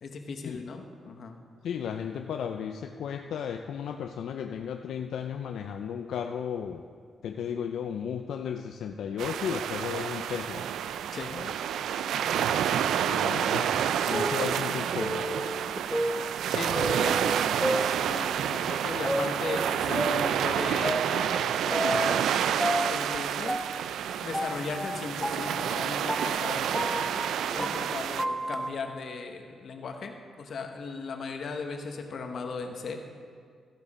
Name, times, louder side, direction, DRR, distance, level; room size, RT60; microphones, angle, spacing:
voice 1, 0.0-1.4 11.1-11.3 13.0-13.5 16.5-21.0 21.6-22.2 22.9-23.6 24.2-27.0 27.5-33.0, left 4 dB, 50° left, 4 dB, 1.0 m, -37 dB
voice 2, 1.6-6.8 7.2-10.7 11.3-11.5 13.1-13.7 14.0-15.3, left 8 dB, 70° left, 5 dB, 0.4 m, -34 dB
sound 1, 9.2-28.3, right 9 dB, 85° right, 0.3 m, -29 dB
Piano Chromatic Scale, 14.1-18.5 19.1-22.3 22.6-28.7, equal, ahead, 0.4 m, -33 dB
13.5 x 9.9 x 4.2 m, 2.1 s
wide cardioid pair, 165°, 0 cm